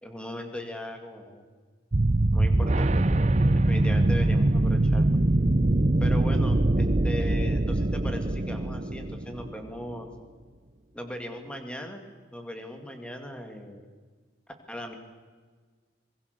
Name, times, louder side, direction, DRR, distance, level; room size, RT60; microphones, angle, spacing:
voice 1, 0.0-1.4 2.3-2.9 3.7-5.2 6.0-10.1 10.9-12.0 12.3-13.8 14.7-14.9, left 1 dB, 5° left, 5 dB, 2.6 m, -38 dB
sound 1, 1.9-9.6, right 2 dB, 35° right, 0.7 m, -23 dB
26.0 x 21.5 x 7.0 m, 1.5 s
head